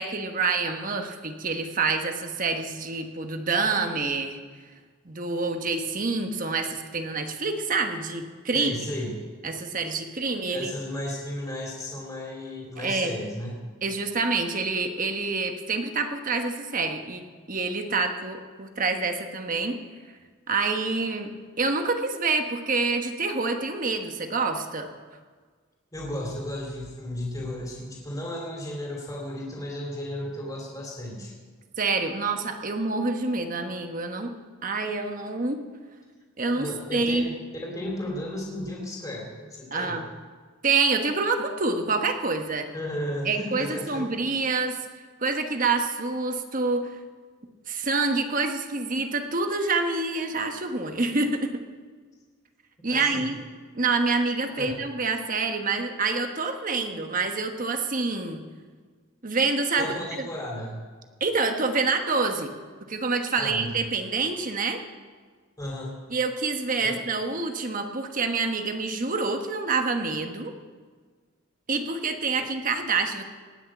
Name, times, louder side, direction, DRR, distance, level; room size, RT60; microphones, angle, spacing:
voice 1, 0.0-4.4 5.0-8.7 9.4-10.7 12.8-13.1 13.8-19.8 20.5-21.3 21.6-24.9 31.8-34.3 34.6-35.6 36.4-37.3 39.7-40.0 40.6-42.7 43.2-44.8 45.2-47.0 47.7-51.5 52.8-53.4 53.7-58.4 59.2-59.9 60.2-60.3 61.2-62.5 62.8-64.8 66.1-70.5 71.7-73.2, right 3 dB, 40° right, 5 dB, 1.2 m, -27 dB
voice 2, 8.5-9.2 10.5-13.6 25.9-31.3 36.5-40.0 42.7-44.1 52.9-53.3 54.5-54.7 59.8-60.7 63.4-63.8 65.6-66.0 66.8-67.0 72.4-72.5, left 1 dB, 15° left, -2 dB, 2.8 m, -34 dB
18.5 x 6.6 x 8.7 m, 1.5 s
head